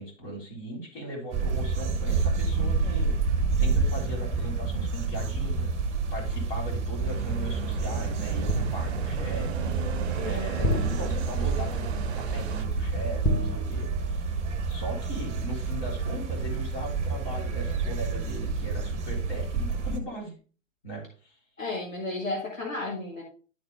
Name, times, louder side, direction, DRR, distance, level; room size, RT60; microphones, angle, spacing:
voice 1, 0.0-3.1 3.6-5.8 6.1-14.3 14.7-20.3 20.8-21.4, right 1 dB, 45° left, 0 dB, 4.2 m, -38 dB
sound 1, 1.3-20.0, right 4 dB, 15° right, 1.0 m, -29 dB
sound 2, 7.0-12.6, right 7 dB, 55° right, 0.6 m, -36 dB
sound 3, 8.5-9.2 10.6-11.6 13.2-14.3 14.6-14.8, equal, 15° left, 1.5 m, -30 dB
voice 2, 10.2-10.8 21.6-23.2, left 2 dB, 85° left, -2 dB, 2.3 m, -33 dB
11.5 x 4.2 x 3.5 m, 0.37 s
figure-of-eight pair, 115°, 39 cm